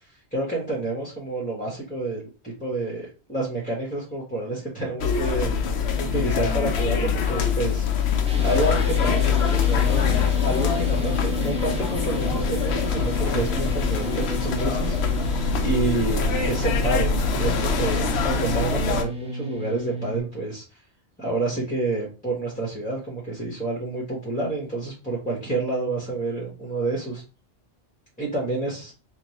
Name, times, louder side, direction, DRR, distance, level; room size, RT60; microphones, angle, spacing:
voice 1, 0.3-8.0 8.4-20.6 21.2-27.2 28.2-28.9, right 2 dB, 10° left, -3 dB, 1.0 m, -29 dB
sound 1, 5.0-19.0, left 6 dB, 70° left, 0.9 m, -24 dB
sound 2, 8.2-20.2, right 1 dB, 10° right, 0.5 m, -33 dB
3.2 x 2.5 x 4.0 m, 0.32 s
omnidirectional pair, 1.2 m